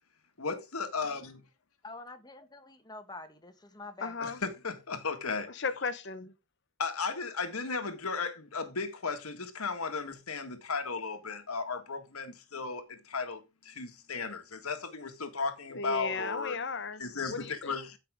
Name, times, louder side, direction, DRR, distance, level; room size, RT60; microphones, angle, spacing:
voice 1, 0.4-1.4 4.2-5.6 6.8-16.6 17.0-18.0, left 4 dB, 85° left, 1.8 m, -35 dB
voice 2, 1.8-4.1, left 3 dB, 20° left, 1.5 m, -46 dB
voice 3, 4.0-4.4 5.5-6.3 15.7-17.8, left 4 dB, 55° left, 1.0 m, -36 dB
14.5 x 5.9 x 3.7 m
head